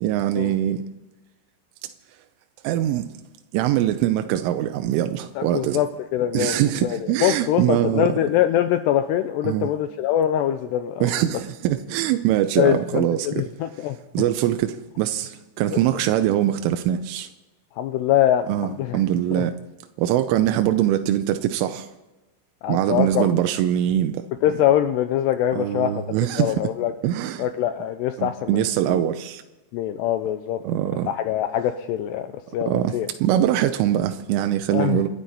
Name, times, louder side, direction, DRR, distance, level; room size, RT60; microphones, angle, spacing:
voice 1, 0.0-0.8 1.8-1.9 2.6-3.1 3.5-5.8 6.3-8.1 9.4-9.7 11.0-13.4 14.1-17.3 18.5-19.5 20.0-21.9 22.7-24.2 25.5-26.6 27.0-27.5 28.2-29.4 30.6-31.1 32.7-32.9 33.2-35.1, right 12 dB, 90° right, 3.3 m, -23 dB
voice 2, 5.4-11.1 12.6-14.0 15.7-15.8 17.8-19.0 19.3-19.5 22.6-23.3 24.4-26.1 26.4-26.9 27.4-29.0 29.7-30.6 31.1-33.1 34.7-35.1, left 11 dB, 85° left, 2.5 m, -23 dB
28.0 x 12.0 x 4.2 m
omnidirectional pair, 5.5 m